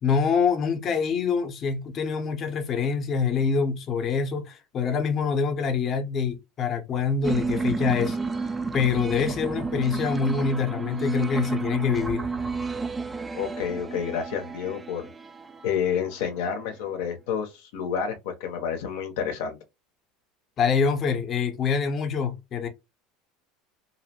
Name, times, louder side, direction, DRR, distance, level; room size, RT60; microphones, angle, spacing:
voice 1, 0.0-8.2 8.7-12.3 20.6-22.7, left 6 dB, 40° left, 0.6 m, -25 dB
sound 1, 7.2-16.2, right 4 dB, 15° right, 0.3 m, -31 dB
voice 2, 13.4-15.1 15.6-19.6, left 7 dB, 75° left, 0.6 m, -29 dB
2.6 x 2.0 x 2.8 m
supercardioid pair, 115°, 0 cm